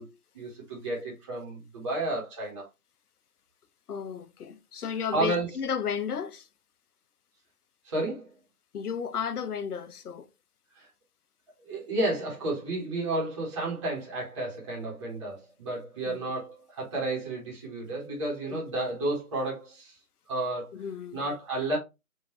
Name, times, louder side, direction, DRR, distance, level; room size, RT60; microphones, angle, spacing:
voice 1, 0.0-2.7 5.1-5.5 7.8-8.3 10.7-10.9 11.7-20.0 20.3-20.7 21.1-21.8, right 2 dB, 20° right, 1.1 m, -32 dB
voice 2, 3.9-6.5 8.7-10.3 16.1-16.2 18.5-18.6 20.7-21.2, left 7 dB, 85° left, 0.7 m, -33 dB
3.7 x 2.6 x 2.9 m
hypercardioid pair, 165°, 45 cm